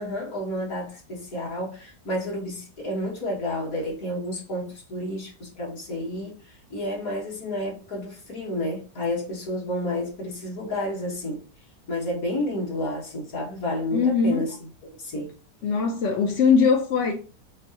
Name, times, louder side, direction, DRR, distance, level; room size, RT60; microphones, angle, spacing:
voice 1, 0.0-11.4 11.9-14.5 15.0-15.3, left 1 dB, 50° left, 1.9 m, -30 dB
voice 2, 13.9-14.4 15.6-17.1, left 5 dB, 70° left, 0.7 m, -21 dB
6.1 x 2.1 x 2.8 m
omnidirectional pair, 1.9 m